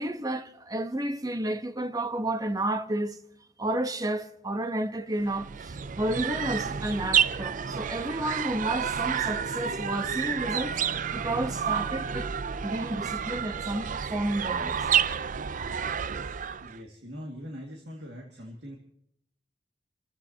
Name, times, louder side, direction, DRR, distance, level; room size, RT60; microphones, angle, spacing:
voice 1, 0.0-3.2 3.6-10.8 11.1-12.3 12.6-14.8, right 1 dB, 20° right, 1.1 m, -31 dB
sound 1, 5.2-16.8, right 7 dB, 45° right, 0.5 m, -30 dB
voice 2, 16.1-18.8, equal, 65° right, 2.3 m, -43 dB
29.0 x 15.5 x 2.9 m
head